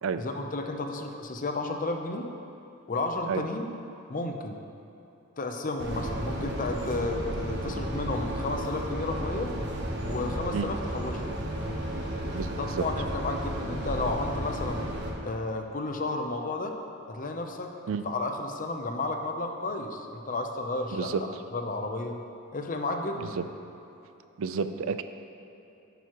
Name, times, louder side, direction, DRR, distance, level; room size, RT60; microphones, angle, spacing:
voice 1, 0.2-2.3 2.9-3.7 4.1-4.6 5.4-9.5 10.0-11.2 12.6-14.9 15.2-16.7 17.1-17.7 18.0-21.1 21.5-22.2 22.5-23.4, left 2 dB, 40° left, 4 dB, 0.7 m, -32 dB
sound 1, 5.8-15.1, equal, 55° right, 1.3 m, -33 dB
voice 2, 24.4-25.0, right 5 dB, 75° right, 10 dB, 0.4 m, -29 dB
10.5 x 9.2 x 3.0 m, 2.9 s
head